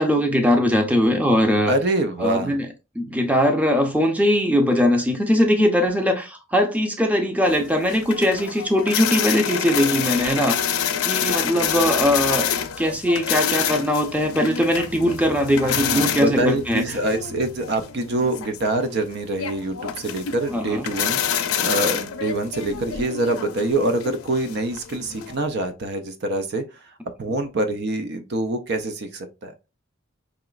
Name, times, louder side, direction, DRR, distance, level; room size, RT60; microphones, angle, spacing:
voice 1, 0.0-1.7 2.2-2.7 2.9-10.7 11.0-12.5 12.8-16.8 20.5-20.8, equal, 5° right, 0.6 m, -20 dB
voice 2, 1.7-2.6 15.6-29.5, right 2 dB, 50° right, 0.5 m, -25 dB
sound 1, 7.5-25.4, left 8 dB, 90° left, 0.5 m, -27 dB
4.9 x 2.9 x 2.4 m
head